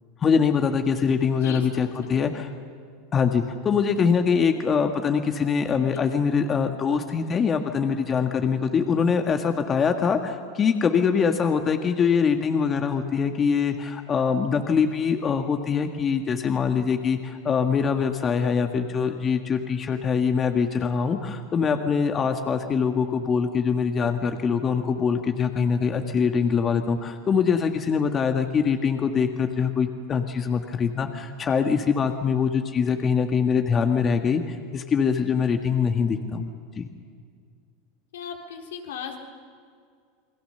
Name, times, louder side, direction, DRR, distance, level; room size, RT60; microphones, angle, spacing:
voice 1, 0.2-2.5 3.1-36.5 36.8-36.9, left 6 dB, 30° left, 5 dB, 1.7 m, -23 dB
voice 2, 38.1-39.2, left 8 dB, 80° left, 2 dB, 3.8 m, -37 dB
28.5 x 21.5 x 6.9 m, 2.1 s
hypercardioid pair, 95°, 0 cm